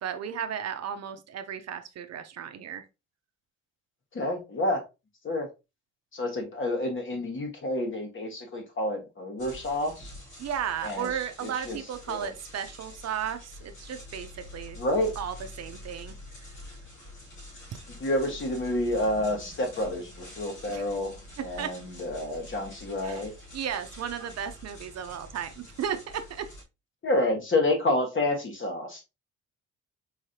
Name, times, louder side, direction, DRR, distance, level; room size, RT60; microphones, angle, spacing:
voice 1, 0.0-2.8 10.4-14.3 14.5-14.8 15.2-16.1 20.7-20.8 21.6-21.7 23.0-23.2 23.5-26.4, right 8 dB, 55° right, 0.7 m, -34 dB
voice 2, 4.1-4.8 5.2-5.5 6.1-10.1 10.8-11.8 12.1-12.3 14.8-15.1 18.0-23.3 27.0-29.0, left 1 dB, 40° left, 1.6 m, -29 dB
sound 1, 9.4-26.6, left 1 dB, 85° left, 2.6 m, -46 dB
4.7 x 3.2 x 2.8 m
cardioid pair, 90°, 30 cm